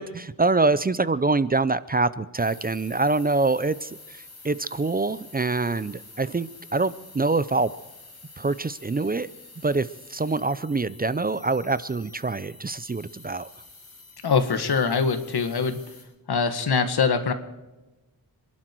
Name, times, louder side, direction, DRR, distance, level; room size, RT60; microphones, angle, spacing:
voice 1, 0.0-7.7 8.4-9.3 9.6-13.5, right 3 dB, 25° right, 16 dB, 0.5 m, -25 dB
sound 1, 2.4-16.0, left 3 dB, 40° left, 5.1 m, -48 dB
voice 2, 14.2-15.8 16.3-17.3, left 5 dB, 80° left, 8 dB, 1.9 m, -23 dB
26.5 x 11.5 x 4.6 m, 1.1 s
wide cardioid pair, 115°, 38 cm